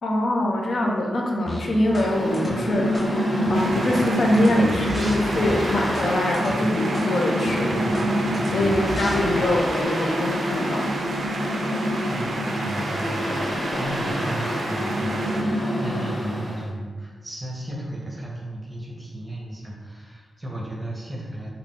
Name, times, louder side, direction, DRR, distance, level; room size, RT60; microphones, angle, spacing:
voice 1, 0.0-3.0 3.5-7.9 8.5-11.0, left 1 dB, 65° left, -1 dB, 0.5 m, -24 dB
sound 1, 1.5-2.1 2.3-3.1 3.5-6.1 6.3-6.5 6.9-7.1 7.4-9.4, equal, 30° left, 0.7 m, -33 dB
Mechanical fan, 1.8-16.6, equal, 85° left, 1.2 m, -26 dB
sound 2, 3.5-15.4, right 3 dB, 70° right, 0.3 m, -34 dB
voice 2, 8.4-9.1 12.1-21.5, right 1 dB, 20° right, -3 dB, 0.7 m, -34 dB
3.6 x 2.2 x 3.6 m, 1.5 s
wide cardioid pair, 110°, 0 cm